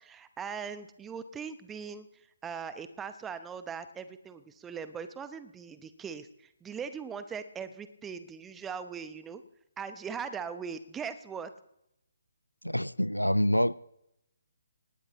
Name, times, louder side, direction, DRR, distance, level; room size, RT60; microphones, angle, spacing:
voice 1, 0.0-2.1 2.4-9.4 9.8-11.5, right 6 dB, 10° right, 12 dB, 0.8 m, -40 dB
voice 2, 12.6-13.8, equal, 90° left, 19 dB, 0.4 m, -26 dB
19.0 x 18.5 x 3.0 m, 0.80 s
figure-of-eight pair, 140°, 0 cm